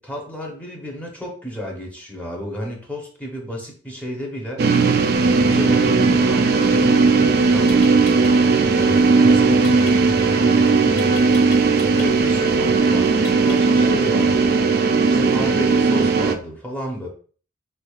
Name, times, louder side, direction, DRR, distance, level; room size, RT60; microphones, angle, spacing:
voice 1, 0.0-4.7 5.4-8.1 8.7-11.3 11.9-17.1, equal, 10° left, -1 dB, 0.8 m, -32 dB
sound 1, 4.6-16.4, right 4 dB, 55° right, 0.4 m, -17 dB
sound 2, 7.7-8.3 9.6-9.9 11.0-12.1 13.2-13.8, left 5 dB, 90° left, 1.4 m, -38 dB
3.5 x 3.3 x 2.4 m, 0.41 s
head